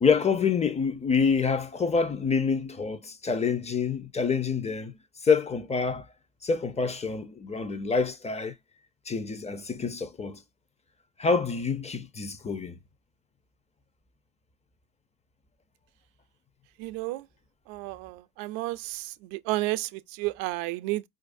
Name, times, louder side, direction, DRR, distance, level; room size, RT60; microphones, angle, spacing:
voice 1, 0.0-4.9 5.2-6.1 6.4-8.5 9.1-10.4 11.2-12.8, left 5 dB, 15° left, 0.5 m, -27 dB
voice 2, 16.8-17.2 17.7-21.0, right 18 dB, 70° right, 0.5 m, -32 dB
4.5 x 2.5 x 2.5 m
hypercardioid pair, 75°, 47 cm